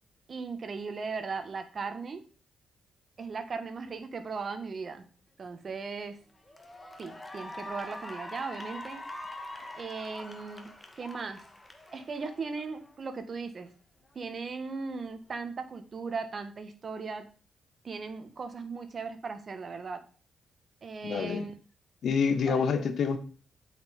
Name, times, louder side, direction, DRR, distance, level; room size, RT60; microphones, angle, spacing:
voice 1, 0.3-2.2 3.2-5.1 5.4-6.2 7.0-9.0 9.7-10.7 11.0-11.4 11.9-13.7 14.2-17.3 17.8-20.0 20.8-21.5 22.5-22.6, right 4 dB, 45° right, 8 dB, 1.8 m, -37 dB
Cheering / Applause, 5.7-6.0 6.4-13.0, left 1 dB, 15° left, 1.9 m, -44 dB
voice 2, 21.0-21.4 22.0-23.2, left 6 dB, 65° left, 10 dB, 1.5 m, -27 dB
8.6 x 5.9 x 5.6 m, 0.39 s
cardioid pair, 80°, 0 cm